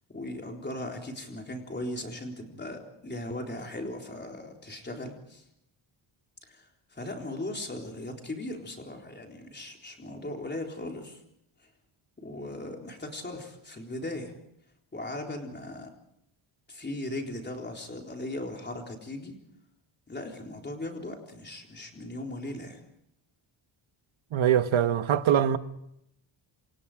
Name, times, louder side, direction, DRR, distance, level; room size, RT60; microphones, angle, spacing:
voice 1, 0.1-5.4 6.5-6.7 6.9-11.2 12.2-14.3 14.9-15.9 16.7-19.3 20.1-22.8, left 1 dB, 20° left, 3.9 m, -38 dB
voice 2, 24.3-25.6, right 9 dB, 70° right, 1.3 m, -23 dB
28.0 x 26.0 x 5.0 m
wide cardioid pair, 180°, 49 cm